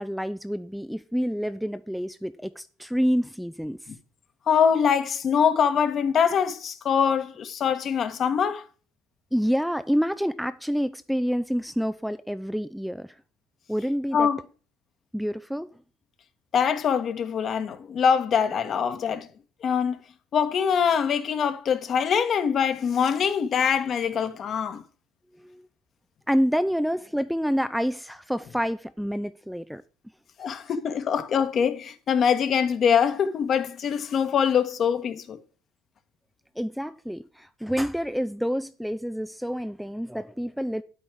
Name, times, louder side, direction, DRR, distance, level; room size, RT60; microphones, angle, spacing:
voice 1, 0.0-3.8 9.3-13.1 13.7-14.3 15.1-15.7 25.4-25.6 26.3-29.8 30.4-30.5 36.6-40.8, equal, ahead, 0.7 m, -28 dB
voice 2, 4.5-8.6 14.1-14.4 16.5-19.3 19.6-20.0 20.3-24.8 30.4-35.4, left 7 dB, 50° left, 1.7 m, -23 dB
11.0 x 8.4 x 4.9 m
hypercardioid pair, 65°, 0 cm